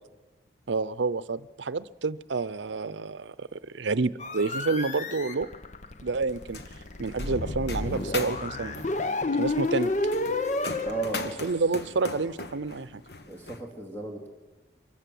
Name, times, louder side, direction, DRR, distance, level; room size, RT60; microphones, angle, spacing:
voice 1, 0.7-5.5 6.0-6.6 7.0-8.8 9.3-9.9 11.4-13.0, right 4 dB, 80° right, 17 dB, 0.6 m, -29 dB
sound 1, 4.2-11.1, left 2 dB, 40° left, 0.8 m, -30 dB
sound 2, 6.3-13.6, left 3 dB, 65° left, 1.3 m, -41 dB
voice 2, 10.8-11.2 13.2-14.3, right 2 dB, 15° left, 0 dB, 2.4 m, -35 dB
24.0 x 15.0 x 7.7 m, 1.3 s
head